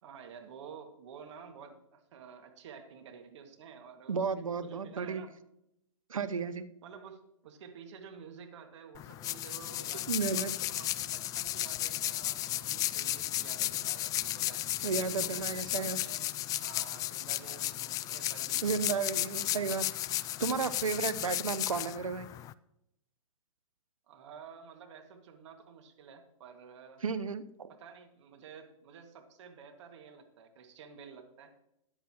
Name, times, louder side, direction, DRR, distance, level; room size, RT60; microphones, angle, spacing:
voice 1, 0.0-5.3 6.8-16.3 16.6-18.6 24.1-27.0 27.7-31.6, right 6 dB, 60° right, 5 dB, 2.0 m, -51 dB
voice 2, 4.1-5.2 6.1-6.7 10.1-10.5 14.8-16.0 18.6-19.9 20.4-22.3 27.0-27.7, right 5 dB, 85° right, 12 dB, 0.8 m, -33 dB
sound 1, 8.9-22.5, left 14 dB, 20° left, 0.3 m, -34 dB
13.5 x 10.0 x 3.0 m, 0.80 s
hypercardioid pair, 115°, 17 cm